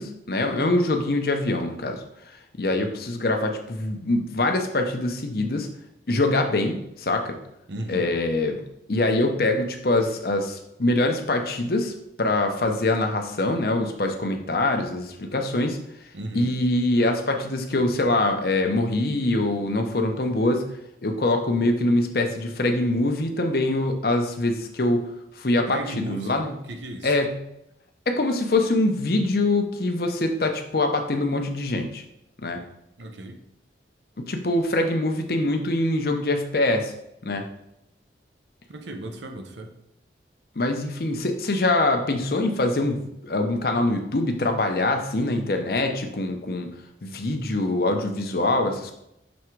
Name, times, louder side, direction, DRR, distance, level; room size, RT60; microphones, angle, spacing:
voice 1, 0.0-2.0 2.6-5.7 6.1-7.4 7.9-8.6 8.9-15.8 16.3-20.7 21.0-25.1 25.4-26.5 27.0-27.3 28.1-32.0 32.4-32.6 34.2-36.9 37.2-37.4 40.6-46.7 47.0-48.9, left 2 dB, 55° left, 5 dB, 0.8 m, -24 dB
voice 2, 7.7-8.1 16.1-16.6 25.7-27.2 33.0-33.4 38.7-39.7, right 1 dB, 85° right, 5 dB, 0.8 m, -35 dB
6.2 x 3.6 x 4.5 m, 0.81 s
head